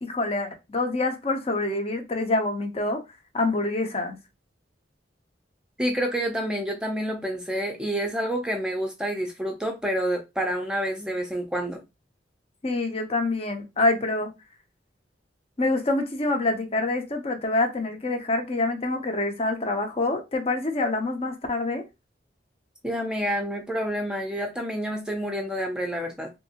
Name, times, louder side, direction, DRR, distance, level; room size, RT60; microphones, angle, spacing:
voice 1, 0.0-3.0 3.3-4.2 12.6-14.3 15.6-21.8, left 2 dB, 35° left, 0.7 m, -26 dB
voice 2, 5.8-11.8 22.8-26.3, equal, 5° right, 0.5 m, -28 dB
3.1 x 2.7 x 2.8 m
head